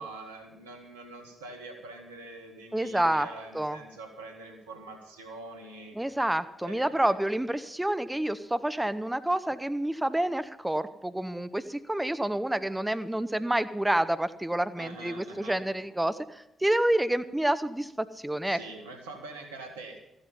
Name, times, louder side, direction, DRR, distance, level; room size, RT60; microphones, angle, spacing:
voice 1, 0.0-6.0 6.6-7.0 14.8-15.6 18.4-20.0, right 2 dB, 85° right, 3 dB, 1.9 m, -44 dB
voice 2, 2.7-3.3 3.5-3.8 6.0-18.6, right 1 dB, 10° right, 12 dB, 0.9 m, -28 dB
14.5 x 12.5 x 5.6 m, 0.91 s
hypercardioid pair, 40°, 0 cm